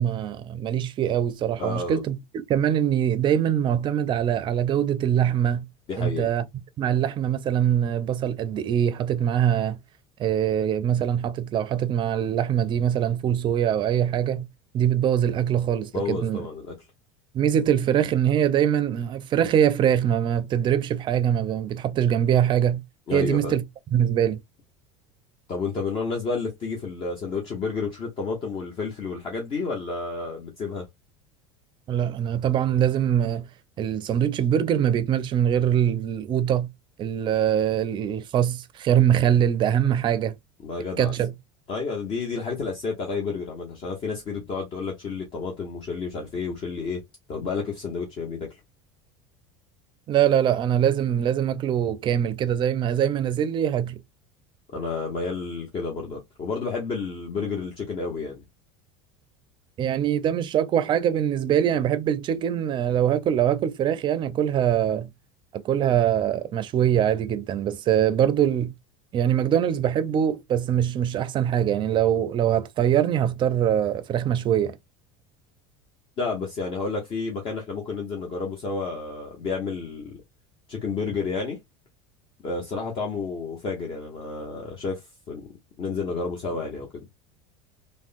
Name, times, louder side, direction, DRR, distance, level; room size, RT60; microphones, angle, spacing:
voice 1, 0.0-2.2 2.5-5.7 6.0-6.5 6.8-9.8 10.2-14.5 14.7-16.5 17.3-22.8 23.1-23.6 23.9-24.4 31.9-33.5 33.8-36.7 37.0-40.4 41.0-41.3 50.1-54.0 59.8-65.1 65.5-68.7 69.1-74.8, right 9 dB, 35° right, 0.4 m, -23 dB
voice 2, 1.6-2.0 5.9-6.3 15.9-16.7 23.1-23.5 25.5-30.9 40.6-41.1 41.7-47.0 47.3-48.6 54.7-58.4 76.2-80.1 80.7-81.6 82.4-85.5 85.8-87.1, left 4 dB, 40° left, 0.9 m, -30 dB
3.4 x 2.1 x 2.5 m
supercardioid pair, 120°, 13 cm